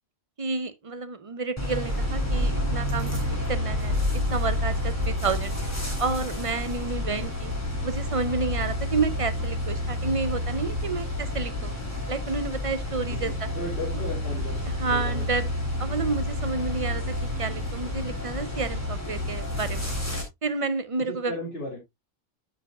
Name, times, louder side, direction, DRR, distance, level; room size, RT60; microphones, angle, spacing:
voice 1, 0.4-4.0 4.3-5.5 6.0-7.5 7.8-11.7 12.1-13.5 14.7-15.5 15.8-19.9 20.4-21.3, right 4 dB, 35° right, 0.5 m, -30 dB
sound 1, 1.6-20.2, left 1 dB, 10° left, 3.1 m, -29 dB
voice 2, 13.2-15.2 21.1-21.8, left 1 dB, 50° left, 2.8 m, -35 dB
9.6 x 7.7 x 2.3 m
omnidirectional pair, 1.3 m